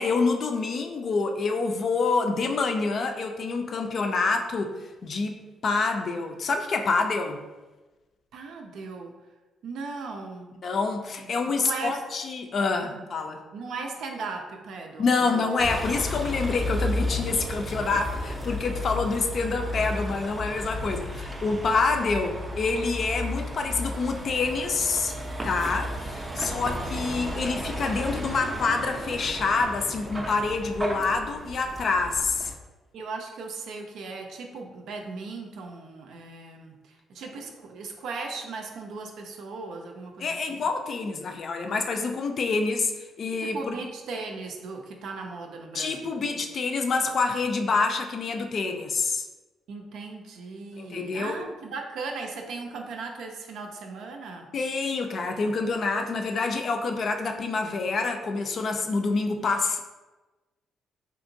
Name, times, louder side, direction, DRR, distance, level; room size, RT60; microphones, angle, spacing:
voice 1, 0.0-7.4 10.6-13.4 15.0-25.1 25.4-26.0 26.3-32.5 40.2-42.9 43.2-43.8 45.7-49.3 50.8-51.4 54.5-59.8, left 4 dB, 55° left, 5 dB, 0.4 m, -27 dB
voice 2, 8.3-9.1 9.6-10.5 11.2-12.0 12.9-13.1 13.5-15.4 21.9-22.3 26.4-27.7 32.9-40.7 43.4-46.4 49.7-54.5, right 4 dB, 75° right, 2 dB, 0.5 m, -38 dB
Vehicle, 15.6-32.5, left 1 dB, 25° right, 0.5 m, -33 dB
3.5 x 2.8 x 2.6 m, 1.2 s
cardioid pair, 90°, 0 cm